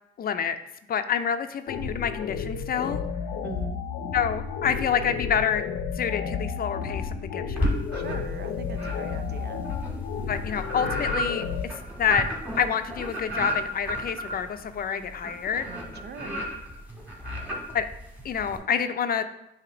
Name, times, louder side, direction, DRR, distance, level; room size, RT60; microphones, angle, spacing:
voice 1, 0.2-0.6 0.9-3.0 4.1-5.6 5.9-7.7 10.3-12.3 12.6-15.7 17.7-17.9 18.2-19.2, left 7 dB, 50° left, 10 dB, 0.5 m, -27 dB
sound 1, 1.7-11.6, left 6 dB, 85° left, 0.7 m, -32 dB
voice 2, 3.4-3.8 7.9-9.6 16.0-16.5, right 5 dB, 55° right, 9 dB, 0.6 m, -40 dB
sound 2, 7.6-8.4 8.7-18.6, equal, 5° right, 1.7 m, -32 dB
7.7 x 2.8 x 5.0 m, 0.87 s
cardioid pair, 90°, 20 cm